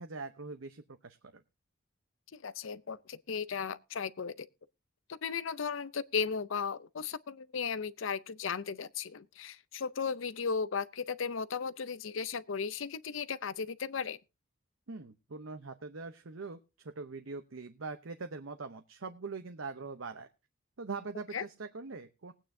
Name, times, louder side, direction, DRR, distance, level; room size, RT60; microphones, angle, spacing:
voice 1, 0.0-1.4 14.9-20.3 20.8-22.3, right 4 dB, 70° right, 0.8 m, -42 dB
voice 2, 2.3-4.5 5.1-14.2 21.3-21.4, left 6 dB, 70° left, 0.6 m, -36 dB
20.0 x 9.0 x 2.7 m
head